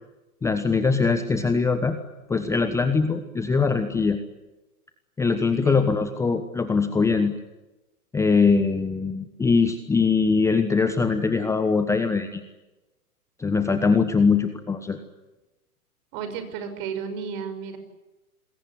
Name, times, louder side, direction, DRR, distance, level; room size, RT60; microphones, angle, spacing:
voice 1, 0.4-2.0 2.3-4.2 5.2-7.3 8.1-12.4 13.4-15.0, left 4 dB, 5° left, 8 dB, 1.2 m, -22 dB
voice 2, 16.1-17.8, right 6 dB, 35° right, 9 dB, 5.9 m, -33 dB
28.0 x 21.5 x 9.6 m, 1.1 s
hypercardioid pair, 135°, 45 cm